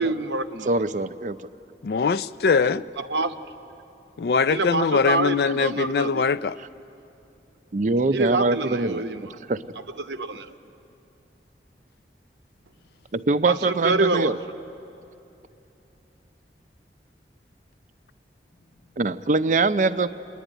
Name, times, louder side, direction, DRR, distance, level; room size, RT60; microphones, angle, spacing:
voice 1, 0.0-0.7 3.0-3.3 4.5-6.2 8.1-9.2 10.0-10.5 13.4-14.3, right 2 dB, 85° right, 0.8 m, -26 dB
voice 2, 0.6-1.4 7.7-9.0 9.5-9.6 13.1-14.4 19.0-20.1, right 3 dB, 45° right, 0.5 m, -23 dB
voice 3, 1.8-2.8 4.2-6.6, left 5 dB, 60° left, 0.4 m, -22 dB
29.0 x 11.0 x 9.1 m
head